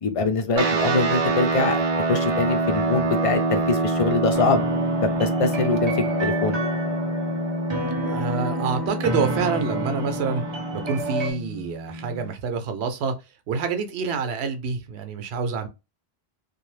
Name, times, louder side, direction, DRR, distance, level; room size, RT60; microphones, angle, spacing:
voice 1, 0.0-1.8 2.1-4.7 5.2-6.6, left 3 dB, 50° left, 0.4 m, -23 dB
sound 1, 0.5-12.3, right 2 dB, 45° right, 0.5 m, -26 dB
sound 2, 4.3-11.3, right 1 dB, 30° right, 0.9 m, -30 dB
voice 2, 8.0-10.4 10.7-13.2 13.5-15.7, right 5 dB, 85° right, 0.8 m, -27 dB
2.6 x 2.2 x 3.2 m
omnidirectional pair, 1.1 m